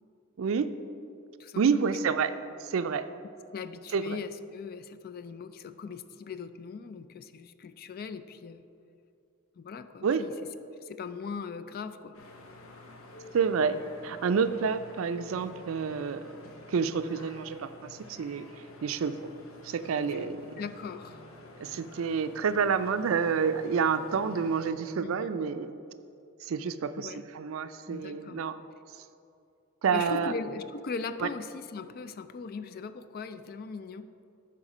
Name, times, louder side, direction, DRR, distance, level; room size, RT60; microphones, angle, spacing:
voice 1, 0.4-0.7 1.6-2.3 2.6-3.0 3.9-4.2 10.0-10.2 13.3-16.3 16.7-18.5 18.8-19.3 19.6-20.4 21.6-25.7 26.4-28.6 29.8-30.3 31.2-31.3, right 6 dB, 75° right, 12 dB, 0.4 m, -28 dB
voice 2, 1.4-2.0 3.5-8.6 9.6-10.3 10.8-12.2 20.1-20.2 20.6-21.2 25.0-25.4 27.0-27.2 27.9-28.4 29.9-34.1, left 5 dB, 45° left, 12 dB, 0.3 m, -39 dB
sound 1, 12.1-24.7, left 2 dB, 85° left, 0.8 m, -50 dB
11.5 x 4.4 x 5.0 m, 2.5 s
head